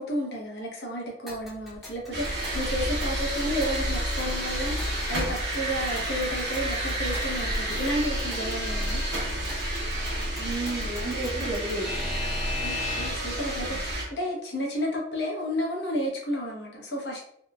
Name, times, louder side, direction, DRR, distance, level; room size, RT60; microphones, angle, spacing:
voice 1, 0.0-9.0 12.6-17.2, equal, 70° left, -1 dB, 0.8 m, -32 dB
Alarm / Clock, 1.3-13.4, left 2 dB, ahead, 0.6 m, -40 dB
sound 1, 2.1-14.0, right 1 dB, 85° right, 0.9 m, -30 dB
voice 2, 10.4-12.1 13.7-13.8, right 2 dB, 45° right, -1 dB, 0.6 m, -32 dB
3.0 x 2.0 x 2.2 m, 0.69 s
head